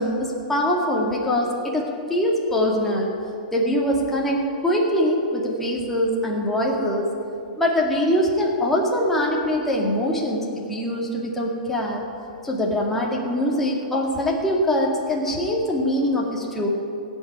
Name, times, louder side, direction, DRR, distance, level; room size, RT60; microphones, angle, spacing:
voice 1, 0.0-3.1 3.5-7.1 7.6-12.0 12.4-16.7, equal, 5° left, -3 dB, 2.1 m, -23 dB
16.0 x 5.6 x 9.4 m, 2.5 s
hypercardioid pair, 150°, 5 cm